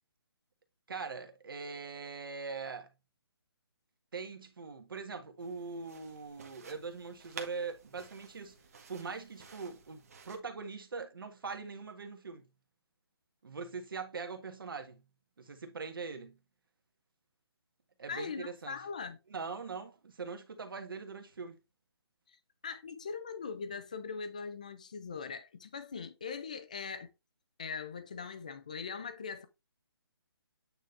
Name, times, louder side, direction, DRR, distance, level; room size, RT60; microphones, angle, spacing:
voice 1, 0.9-2.9 4.1-8.6 8.9-10.0 10.3-12.5 13.4-15.0 15.4-16.4 18.0-18.8 19.3-21.6, right 4 dB, 55° right, 1.6 m, -42 dB
sound 1, 5.4-10.4, right 5 dB, 35° right, 1.5 m, -52 dB
voice 2, 18.1-19.2 22.3-22.4 22.6-27.1 27.6-29.5, left 5 dB, 15° left, 0.4 m, -41 dB
8.9 x 4.1 x 3.3 m
hypercardioid pair, 175°, 13 cm